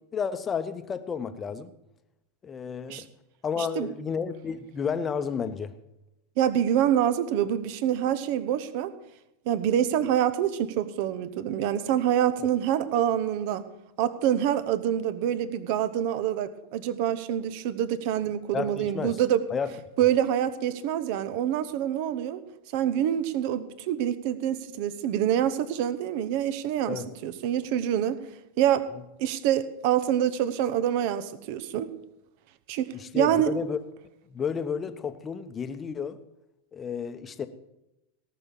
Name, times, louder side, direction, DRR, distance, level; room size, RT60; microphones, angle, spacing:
voice 1, 0.0-1.7 2.4-3.1 3.4-5.7 18.5-19.2 19.5-19.7 26.9-27.1 32.9-33.8 34.3-36.2 36.7-37.5, left 6 dB, 20° left, 10 dB, 0.9 m, -31 dB
voice 2, 3.6-3.9 6.4-8.9 9.5-13.7 14.0-19.4 20.0-22.4 22.7-28.2 28.6-28.8 29.2-31.9 32.7-33.5, right 10 dB, 45° right, 14 dB, 0.9 m, -26 dB
17.5 x 6.8 x 7.4 m, 0.90 s
figure-of-eight pair, 90°, 0 cm